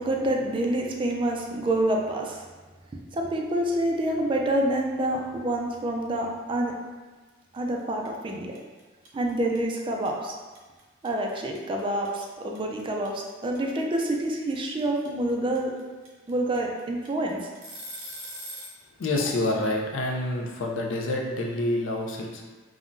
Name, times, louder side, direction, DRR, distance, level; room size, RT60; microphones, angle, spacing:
voice 1, 0.0-2.5 3.1-6.7 7.5-8.5 9.1-10.3 11.0-15.7 16.3-17.5, right 1 dB, 25° right, 0 dB, 0.3 m, -27 dB
sound 1, 7.5-7.8 8.0-18.8, equal, 70° right, 0.6 m, -41 dB
voice 2, 19.0-22.4, left 2 dB, 70° left, 0 dB, 0.5 m, -27 dB
3.6 x 2.1 x 2.5 m, 1.3 s
head